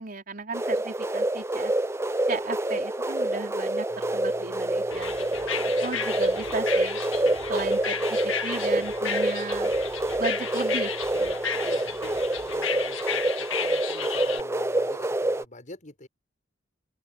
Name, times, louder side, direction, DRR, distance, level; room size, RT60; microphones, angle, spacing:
voice 1, 0.0-1.7 2.3-7.0 7.5-9.7 10.2-11.7, right 3 dB, 50° right, 4.6 m, -35 dB
sound 1, 0.5-15.4, right 1 dB, 15° right, 0.8 m, -27 dB
sound 2, 3.9-12.2, equal, 75° right, 7.8 m, -52 dB
sound 3, 4.9-14.4, left 8 dB, 80° left, 2.0 m, -34 dB
voice 2, 5.6-6.3 11.6-16.1, left 2 dB, 40° left, 5.4 m, -46 dB
open air
head